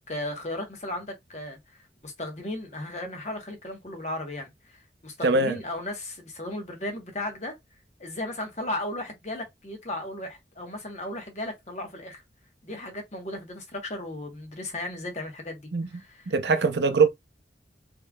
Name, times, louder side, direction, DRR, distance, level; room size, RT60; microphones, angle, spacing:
voice 1, 0.1-1.6 2.0-4.8 5.0-7.5 8.0-12.2 12.6-16.3, left 1 dB, 40° left, 1.1 m, -35 dB
voice 2, 5.2-5.6 15.7-15.9 16.3-17.1, right 4 dB, 75° right, 0.6 m, -21 dB
3.6 x 3.2 x 2.3 m
head